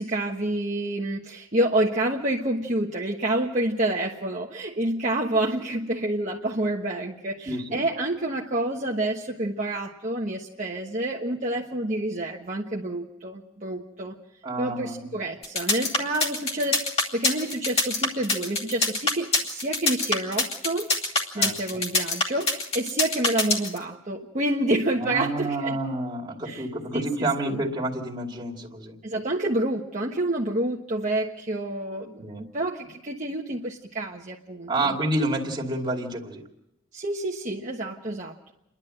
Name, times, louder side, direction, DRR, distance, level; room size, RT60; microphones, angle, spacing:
voice 1, 0.0-14.1 14.6-20.9 21.3-25.8 26.4-26.7 26.9-27.6 29.0-35.0 36.9-38.5, right 1 dB, 40° right, -2 dB, 1.3 m, -28 dB
voice 2, 7.5-7.8 14.4-15.0 21.4-21.5 25.0-28.9 32.2-32.4 34.7-36.4, right 2 dB, 25° right, -1 dB, 2.5 m, -29 dB
sound 1, 15.4-23.8, left 3 dB, 30° left, 2.6 m, -24 dB
29.5 x 11.5 x 7.7 m, 0.87 s
head